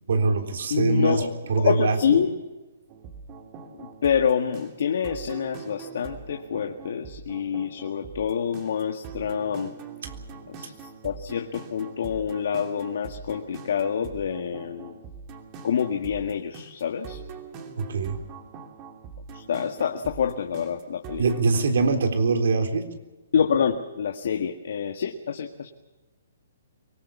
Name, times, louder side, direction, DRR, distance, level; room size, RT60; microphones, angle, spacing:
voice 1, 0.1-1.2 1.5-2.2 17.8-18.2 21.2-22.8, right 4 dB, 75° right, 6 dB, 3.7 m, -23 dB
voice 2, 0.7-2.3 3.8-9.7 10.5-10.7 11.0-15.0 15.6-17.2 19.3-21.2 23.3-25.7, left 7 dB, 70° left, 5 dB, 1.8 m, -27 dB
sound 1, 2.9-21.6, right 5 dB, 30° right, 2.9 m, -42 dB
24.0 x 19.0 x 7.1 m, 1.1 s
hypercardioid pair, 150°, 0 cm